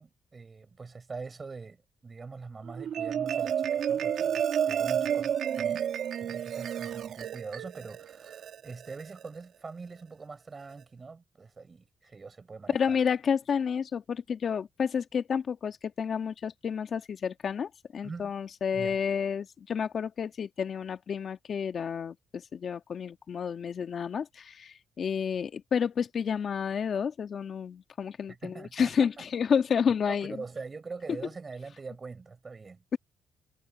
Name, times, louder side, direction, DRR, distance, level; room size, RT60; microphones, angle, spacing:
voice 1, 0.0-5.9 6.2-13.0 18.0-18.3 18.7-19.0 28.3-29.3 30.1-32.8, right 4 dB, 30° right, 6.6 m, -43 dB
Marimba xylophone, 2.7-9.3, right 9 dB, 70° right, 2.0 m, -31 dB
voice 2, 12.7-30.3, left 7 dB, 55° left, 2.1 m, -30 dB
cardioid pair, 90°, 0 cm